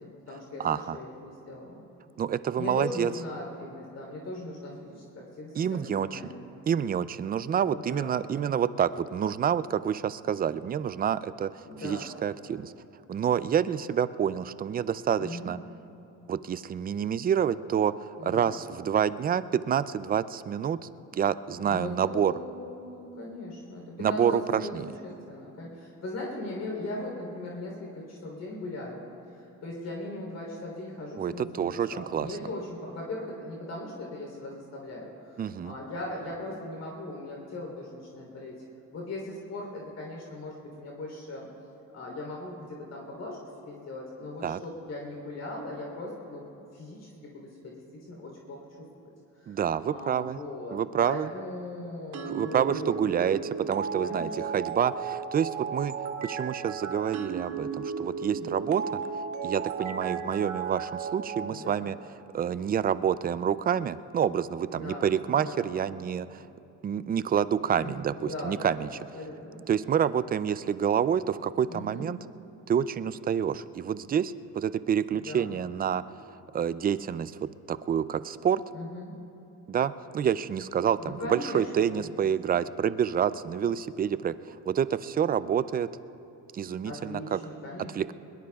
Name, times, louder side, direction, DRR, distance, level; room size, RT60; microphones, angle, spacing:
voice 1, 0.0-1.8 2.6-6.4 7.7-8.5 11.6-12.1 15.2-15.5 18.2-18.5 21.5-29.1 29.3-38.6 38.9-41.5 41.9-43.4 43.7-49.1 49.4-49.6 49.9-53.3 54.0-54.4 58.4-58.7 61.4-61.9 64.7-65.8 67.8-68.9 69.1-69.7 71.7-72.1 75.1-75.5 78.7-79.1 81.0-82.1 86.8-87.9, left 2 dB, 50° left, -1 dB, 3.5 m, -39 dB
voice 2, 0.6-1.0 2.2-3.1 5.6-6.2 6.7-11.5 11.8-12.7 13.1-15.6 16.3-20.8 21.1-22.3 24.0-24.9 31.2-32.3 35.4-35.7 44.4-44.6 49.5-50.4 50.7-51.3 52.3-55.9 56.2-59.0 59.4-62.0 62.3-66.4 66.8-68.9 69.7-72.2 72.7-76.0 76.5-77.3 77.7-78.6 79.7-85.9 86.5-87.4 88.0-88.1, right 8 dB, 30° right, 15 dB, 0.4 m, -28 dB
sound 1, 52.1-61.5, right 6 dB, 60° right, 1.2 m, -34 dB
22.5 x 21.0 x 2.4 m, 2.8 s
cardioid pair, 105°, 33 cm